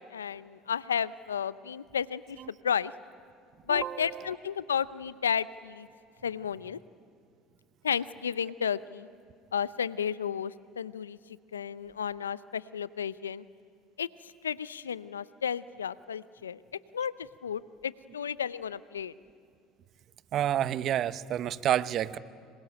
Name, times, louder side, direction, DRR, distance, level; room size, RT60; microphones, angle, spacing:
voice 1, 0.0-2.4 2.6-2.9 3.7-5.9 6.2-6.8 7.8-9.1 9.5-11.2 11.5-13.4 14.0-16.6 16.9-19.1, left 7 dB, 90° left, 18 dB, 0.6 m, -33 dB
voice 2, 3.7-4.3 20.3-22.2, right 11 dB, 50° right, 15 dB, 1.0 m, -29 dB
26.0 x 25.5 x 8.9 m, 2.3 s
hypercardioid pair, 65°, 0 cm